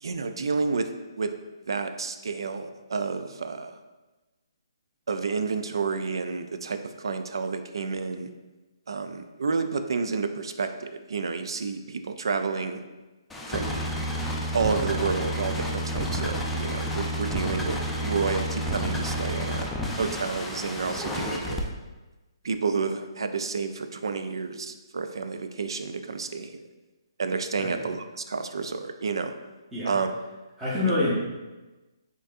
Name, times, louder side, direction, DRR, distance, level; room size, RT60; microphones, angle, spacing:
voice 1, 0.0-0.9 1.2-1.3 1.7-3.8 5.1-8.3 8.9-12.8 13.5-13.9 14.5-19.7 20.0-21.6 22.4-26.6 27.2-29.3 29.8-30.1 30.9-31.0, right 4 dB, 75° right, 8 dB, 0.4 m, -30 dB
sound 1, 13.3-21.6, equal, 5° left, 0.4 m, -30 dB
voice 2, 30.6-31.1, left 2 dB, 10° right, -12 dB, 1.2 m, -26 dB
5.2 x 3.8 x 2.5 m, 1.1 s
hypercardioid pair, 145°, 3 cm